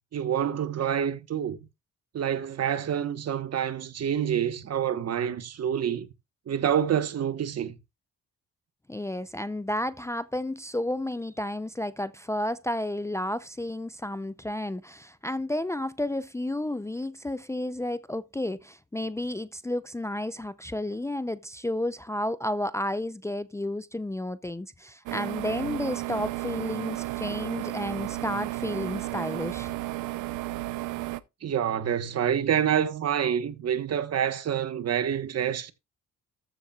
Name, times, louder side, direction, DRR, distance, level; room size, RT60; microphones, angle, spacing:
voice 1, 0.1-1.6 2.1-6.1 6.5-7.8 31.4-35.7, right 9 dB, 55° right, 1.3 m, -27 dB
voice 2, 8.9-29.7, left 1 dB, 10° left, 0.5 m, -32 dB
sound 1, 25.1-31.2, right 17 dB, 90° right, 0.7 m, -33 dB
14.0 x 7.0 x 2.3 m
cardioid pair, 90°, 30 cm